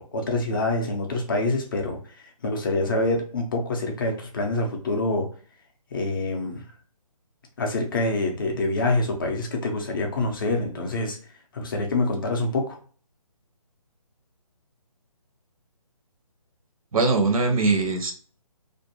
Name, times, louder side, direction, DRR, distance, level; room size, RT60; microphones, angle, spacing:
voice 1, 0.0-2.0 2.4-5.3 5.9-6.6 7.6-11.2 11.5-12.8, left 2 dB, 35° left, 2 dB, 0.5 m, -26 dB
voice 2, 16.9-18.1, right 3 dB, 70° right, 5 dB, 0.7 m, -21 dB
2.5 x 2.1 x 2.8 m, 0.43 s
figure-of-eight pair, 150°, 19 cm